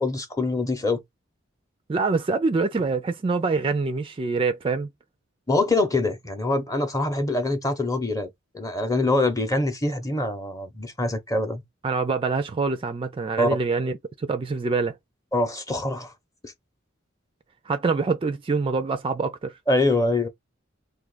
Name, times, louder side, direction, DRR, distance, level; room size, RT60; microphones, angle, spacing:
voice 1, 0.0-1.0 5.5-8.3 8.5-11.6 13.4-13.5 15.3-16.1 16.4-16.5 19.7-20.3, left 2 dB, 15° left, 0.7 m, -24 dB
voice 2, 1.9-4.9 11.8-14.9 17.7-19.5, right 4 dB, 25° right, 0.3 m, -25 dB
2.6 x 2.4 x 3.8 m
head